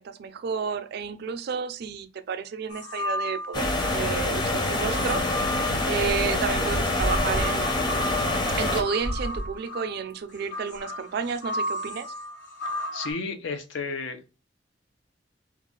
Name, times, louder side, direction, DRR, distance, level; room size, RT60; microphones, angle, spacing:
voice 1, 0.0-5.2 5.9-7.9 8.6-12.1, right 6 dB, 60° right, 0.4 m, -31 dB
sound 1, 2.7-3.9 4.5-13.1, left 1 dB, 70° left, 1.1 m, -34 dB
sound 2, 3.5-8.8, left 2 dB, 25° left, 0.6 m, -26 dB
sound 3, 6.0-7.5 7.9-8.0 8.8-9.5 10.1-10.2 10.8-10.9, equal, 50° left, 1.7 m, -31 dB
voice 2, 12.9-14.2, left 4 dB, 85° left, 0.7 m, -32 dB
2.9 x 2.3 x 3.7 m
head